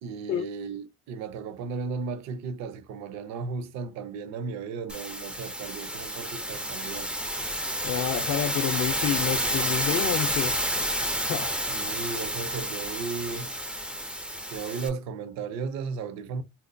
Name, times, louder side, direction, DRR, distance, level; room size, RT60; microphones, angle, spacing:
voice 1, 0.0-7.1 11.7-13.5 14.5-16.4, right 5 dB, 65° right, 0.6 m, -35 dB
sound 1, 4.9-14.9, equal, 5° right, 0.3 m, -30 dB
voice 2, 7.8-10.5 11.2-11.6, left 10 dB, 60° left, 0.5 m, -29 dB
4.2 x 2.2 x 2.5 m
cardioid pair, 175°, 30 cm